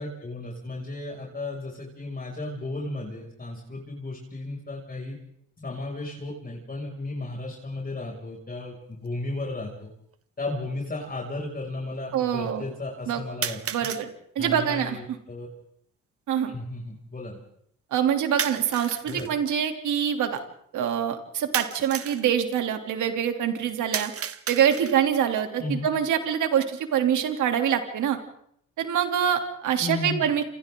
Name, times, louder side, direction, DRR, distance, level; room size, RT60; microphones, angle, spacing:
voice 1, 0.0-5.2 5.6-9.9 10.4-13.6 14.4-15.5 16.5-17.4 19.1-19.3 25.6-25.9 29.8-30.2, left 2 dB, 30° left, -2 dB, 6.6 m, -34 dB
sound 1, 9.1-9.2 10.1-10.2 13.4-14.1 18.4-19.3 21.5-22.2 23.9-25.1, right 8 dB, 50° right, 1.4 m, -32 dB
voice 2, 12.1-12.6 13.1-13.2 13.7-14.1 14.3-15.0 16.3-16.5 17.9-20.4 20.7-24.1 24.5-28.2 28.8-30.4, right 9 dB, 80° right, 5 dB, 3.3 m, -25 dB
28.5 x 28.5 x 3.9 m, 0.69 s
cardioid pair, 90°, 30 cm